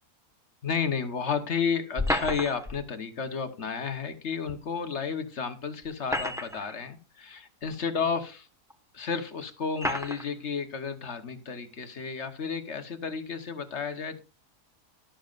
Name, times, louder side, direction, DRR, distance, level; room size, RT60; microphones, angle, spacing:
voice 1, 0.6-8.5 8.9-14.2, left 6 dB, 50° left, 10 dB, 1.3 m, -32 dB
sound 1, 2.0-2.8 4.5-4.6 5.8-6.8 7.6-7.7 8.7-8.8 9.8-10.3, left 1 dB, ahead, 1.1 m, -30 dB
12.5 x 11.5 x 2.5 m, 0.32 s
omnidirectional pair, 1.7 m